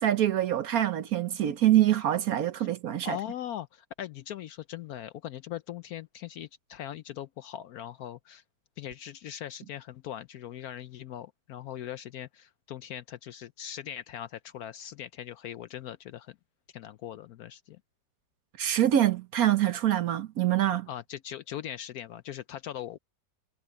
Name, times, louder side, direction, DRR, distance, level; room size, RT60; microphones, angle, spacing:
voice 1, 0.0-3.2 18.6-20.9, right 12 dB, 60° right, 1.1 m, -25 dB
voice 2, 3.0-8.4 8.8-16.4 16.7-17.8 20.9-23.0, left 11 dB, 70° left, 0.9 m, -40 dB
omnidirectional pair, 1.9 m